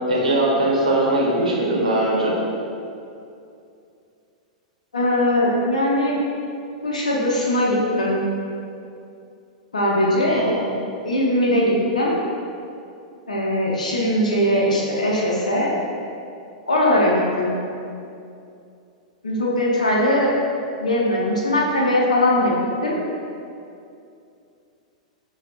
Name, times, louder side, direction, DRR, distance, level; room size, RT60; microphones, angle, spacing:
voice 1, 0.1-2.4 10.3-10.7, right 1 dB, 85° right, -4 dB, 0.8 m, -20 dB
voice 2, 4.9-6.2 6.8-8.2 9.7-10.4 11.0-12.2 13.3-15.7 16.7-17.5 19.2-20.3 20.8-22.5 22.8-23.0, left 1 dB, 85° left, -4 dB, 0.7 m, -20 dB
5.8 x 2.3 x 2.5 m, 2.6 s
hypercardioid pair, 105°, 4 cm